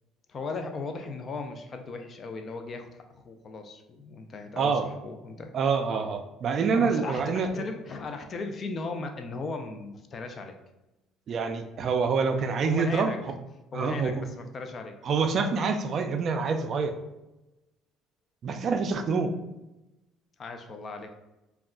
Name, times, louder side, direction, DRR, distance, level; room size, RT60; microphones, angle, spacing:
voice 1, 0.3-5.5 6.7-10.6 12.7-13.2 13.7-15.0 20.4-21.2, left 3 dB, 40° left, 6 dB, 0.4 m, -37 dB
voice 2, 4.6-4.9 5.5-7.6 11.3-13.1 13.7-14.3 15.0-17.0 18.4-19.3, right 5 dB, 50° right, 6 dB, 0.3 m, -26 dB
2.3 x 2.1 x 3.6 m, 0.96 s
supercardioid pair, 90°, 0 cm